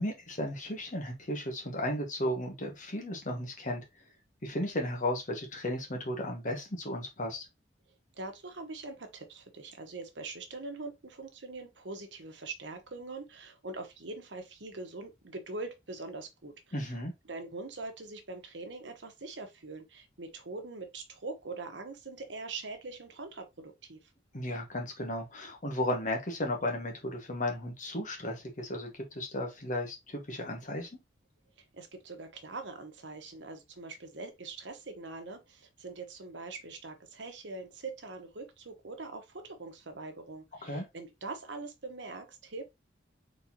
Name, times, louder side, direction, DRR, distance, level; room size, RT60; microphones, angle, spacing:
voice 1, 0.0-3.8 4.4-7.5 16.7-17.1 24.3-30.9 40.6-40.9, left 1 dB, 45° left, 1.5 m, -34 dB
voice 2, 8.1-16.9 17.3-24.0 31.7-42.6, right 3 dB, 80° right, 1.1 m, -43 dB
4.3 x 4.0 x 2.8 m
head